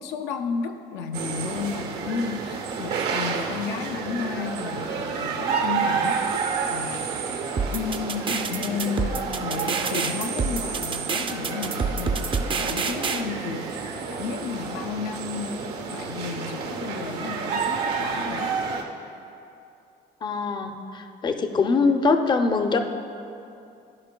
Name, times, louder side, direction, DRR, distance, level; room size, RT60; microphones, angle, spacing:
voice 1, 0.0-7.4 7.7-15.6 15.9-18.5, left 6 dB, 85° left, 5 dB, 0.5 m, -33 dB
sound 1, 1.1-18.8, right 5 dB, 75° right, 0.9 m, -30 dB
sound 2, 7.6-13.2, right 5 dB, 30° right, 0.4 m, -27 dB
voice 2, 20.2-22.8, left 4 dB, 25° left, 6 dB, 0.5 m, -23 dB
14.5 x 5.2 x 2.2 m, 2.6 s
cardioid pair, 110°, 17 cm